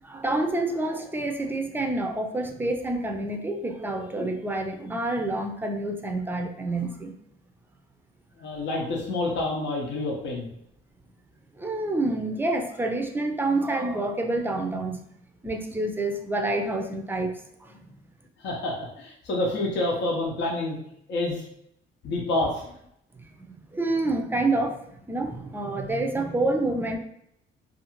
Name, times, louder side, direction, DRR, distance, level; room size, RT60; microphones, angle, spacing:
voice 1, 0.0-7.1 11.5-15.0 15.4-17.3 17.6-17.8 23.2-24.8 25.1-27.0, right 2 dB, 10° right, 4 dB, 0.4 m, -28 dB
voice 2, 8.4-10.5 18.4-20.8 21.1-21.5 22.0-22.7, left 2 dB, 65° left, -2 dB, 0.7 m, -28 dB
2.6 x 2.4 x 2.9 m, 0.72 s
cardioid pair, 90°, 20 cm